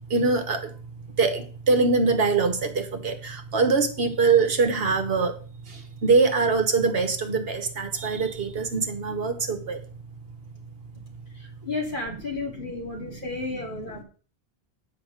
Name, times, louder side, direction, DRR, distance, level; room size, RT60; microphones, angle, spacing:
voice 1, 0.1-0.7 1.2-5.4 5.7-9.8 13.0-13.2, right 4 dB, 65° right, 7 dB, 1.3 m, -23 dB
voice 2, 11.3-14.0, left 3 dB, 50° left, -1 dB, 2.6 m, -33 dB
8.5 x 4.5 x 6.4 m, 0.38 s
omnidirectional pair, 1.1 m